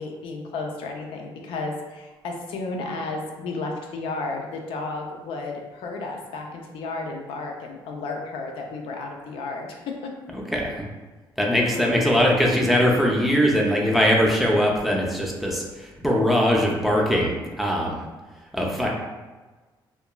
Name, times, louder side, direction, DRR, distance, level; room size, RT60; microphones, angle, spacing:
voice 1, 0.0-10.2 11.6-11.9, left 3 dB, 90° left, 1 dB, 0.4 m, -33 dB
voice 2, 10.3-10.9 11.4-18.0 18.5-18.9, equal, ahead, -2 dB, 0.4 m, -21 dB
2.9 x 2.2 x 2.2 m, 1.3 s
cardioid pair, 115°, 9 cm